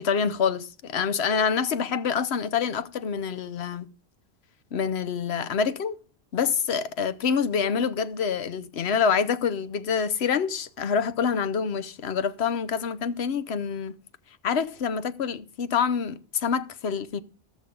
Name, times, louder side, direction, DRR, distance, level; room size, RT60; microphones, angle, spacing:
voice 1, 0.0-3.9 4.7-5.9 6.3-13.9 14.4-17.2, left 6 dB, 75° left, 1.0 m, -26 dB
14.5 x 6.3 x 5.1 m
omnidirectional pair, 1.1 m